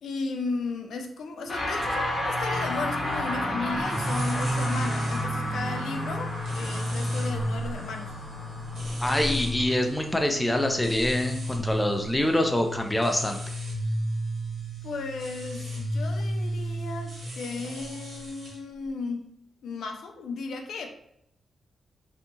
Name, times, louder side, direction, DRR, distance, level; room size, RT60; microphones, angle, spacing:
voice 1, 0.0-8.1 14.8-19.3 19.6-20.9, left 3 dB, 90° left, 4 dB, 0.3 m, -35 dB
sound 1, 1.5-11.0, left 1 dB, 35° left, 0.7 m, -32 dB
sound 2, 3.8-18.5, equal, 65° right, 1.1 m, -32 dB
voice 2, 9.0-13.4, left 1 dB, 10° left, 4 dB, 0.3 m, -25 dB
2.7 x 2.3 x 2.7 m, 0.74 s
wide cardioid pair, 135°, 0 cm